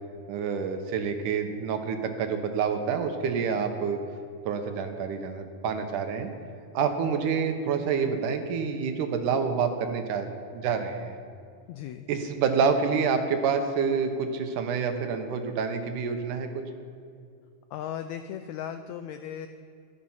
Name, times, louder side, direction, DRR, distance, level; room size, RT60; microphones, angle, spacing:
voice 1, 0.3-4.0 4.5-6.3 6.7-10.3 10.5-11.2 12.1-16.6, right 6 dB, 75° right, 6 dB, 2.5 m, -27 dB
voice 2, 11.7-12.1 17.7-19.5, left 9 dB, 85° left, 9 dB, 1.6 m, -36 dB
13.5 x 12.5 x 5.7 m, 2.3 s
omnidirectional pair, 3.8 m